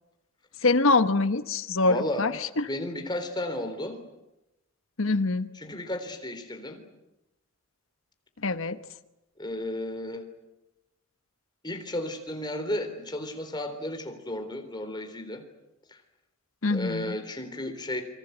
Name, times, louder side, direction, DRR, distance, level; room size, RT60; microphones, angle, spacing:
voice 1, 0.6-2.7 5.0-5.5 8.4-8.8 16.6-17.1, left 3 dB, 60° left, 11 dB, 1.1 m, -24 dB
voice 2, 1.8-2.4 2.7-4.0 5.5-6.8 9.4-10.2 11.6-15.4 15.9-16.0 16.7-18.0, left 1 dB, 20° left, 6 dB, 3.7 m, -33 dB
28.0 x 25.0 x 8.1 m, 0.93 s
head